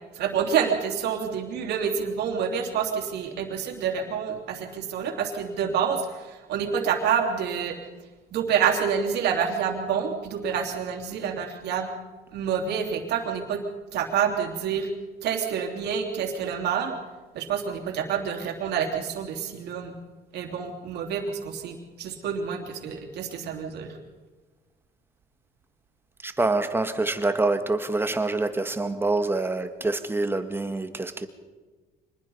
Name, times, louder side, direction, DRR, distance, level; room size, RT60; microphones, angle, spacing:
voice 1, 0.1-7.8 8.3-11.9 12.3-13.6 13.9-14.9 15.2-16.9 17.3-19.9 20.3-24.0, right 7 dB, 75° right, 2 dB, 3.1 m, -28 dB
voice 2, 26.2-31.3, right 2 dB, 15° right, 8 dB, 1.6 m, -26 dB
25.0 x 20.5 x 5.6 m, 1.3 s
cardioid pair, 110°, 17 cm